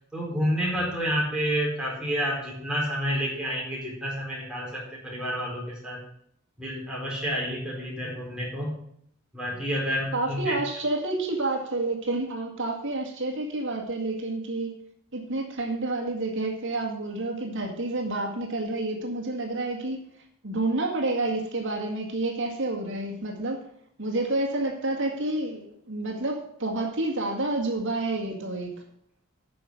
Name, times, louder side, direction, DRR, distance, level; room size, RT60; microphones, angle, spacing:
voice 1, 0.1-6.0 6.6-8.8 9.3-10.6, equal, 5° right, -5 dB, 4.5 m, -29 dB
voice 2, 10.1-14.8 15.1-20.0 20.4-23.7 24.0-28.8, right 2 dB, 60° right, 1 dB, 2.0 m, -29 dB
9.3 x 6.5 x 7.7 m, 0.67 s
head